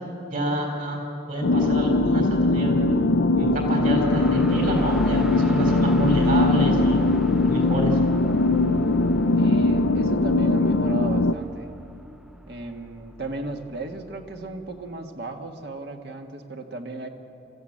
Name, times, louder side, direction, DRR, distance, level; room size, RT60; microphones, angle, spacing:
voice 1, 0.3-1.0 1.3-2.8 3.3-7.0 7.4-8.0, equal, 45° right, 1 dB, 4.0 m, -28 dB
sound 1, 1.4-11.3, left 2 dB, 85° left, 0.6 m, -21 dB
sound 2, 3.4-15.1, equal, 5° right, 0.4 m, -38 dB
voice 2, 9.4-11.7 12.5-17.1, right 2 dB, 60° right, 4 dB, 1.6 m, -35 dB
26.5 x 14.5 x 8.7 m, 2.9 s
head